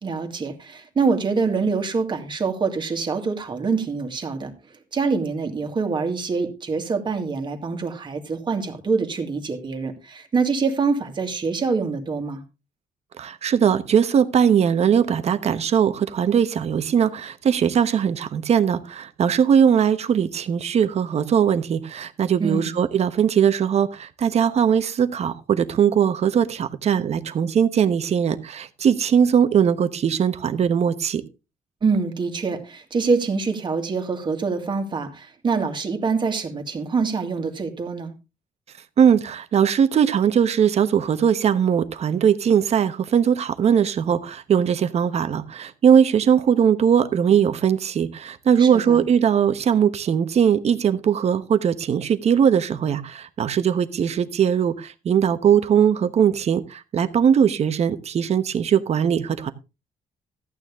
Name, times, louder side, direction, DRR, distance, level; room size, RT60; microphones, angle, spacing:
voice 1, 0.0-12.4 22.4-22.8 31.8-38.1 48.6-49.1, right 4 dB, 30° right, 5 dB, 2.2 m, -25 dB
voice 2, 13.2-31.2 39.0-59.5, right 8 dB, 50° right, 11 dB, 1.1 m, -20 dB
14.0 x 9.2 x 3.6 m, 0.28 s
cardioid pair, 145°, 15 cm